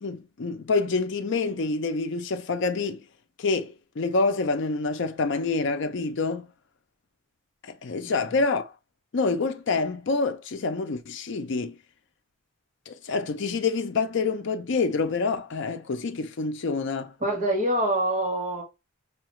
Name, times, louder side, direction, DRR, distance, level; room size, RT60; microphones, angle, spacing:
voice 1, 0.0-3.0 3.4-6.5 7.6-8.7 9.1-11.8 12.9-17.1, left 4 dB, 60° left, 0.5 m, -27 dB
voice 2, 17.2-18.6, right 1 dB, 35° right, 1.1 m, -25 dB
5.6 x 2.3 x 3.0 m
head